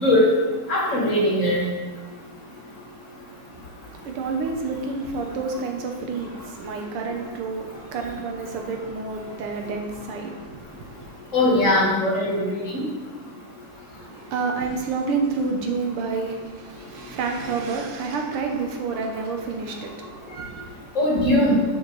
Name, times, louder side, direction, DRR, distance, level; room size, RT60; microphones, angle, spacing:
voice 1, 0.7-1.6 11.3-12.8 20.9-21.6, left 1 dB, 40° left, -5 dB, 1.6 m, -20 dB
voice 2, 3.9-11.1 14.0-20.7, right 4 dB, 85° right, 3 dB, 1.8 m, -29 dB
6.6 x 5.7 x 3.2 m, 1.3 s
omnidirectional pair, 2.4 m